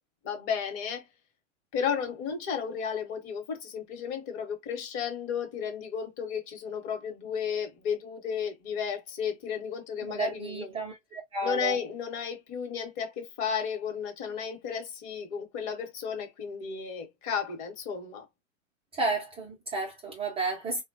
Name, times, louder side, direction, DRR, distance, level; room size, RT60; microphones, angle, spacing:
voice 1, 0.2-1.1 1.7-10.7 11.4-18.2, left 7 dB, 40° left, 1.0 m, -33 dB
voice 2, 10.0-11.8 18.9-20.8, right 3 dB, 15° right, 0.4 m, -32 dB
3.2 x 2.2 x 2.5 m
figure-of-eight pair, 100°, 39 cm